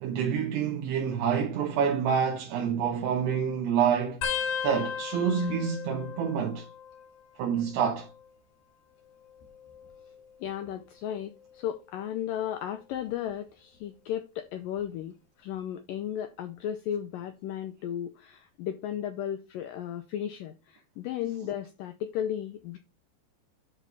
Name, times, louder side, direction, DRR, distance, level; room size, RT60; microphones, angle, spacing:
voice 1, 0.0-4.2 4.6-6.7 7.4-8.1, right 7 dB, 80° right, 3.2 m, -27 dB
sound 1, 4.2-7.4 7.7-8.3 9.3-10.7 11.4-11.7 12.9-13.3 14.8-14.9, left 7 dB, 65° left, 3.8 m, -37 dB
voice 2, 10.4-22.8, left 10 dB, 85° left, 2.0 m, -35 dB
10.5 x 5.0 x 3.5 m
omnidirectional pair, 4.7 m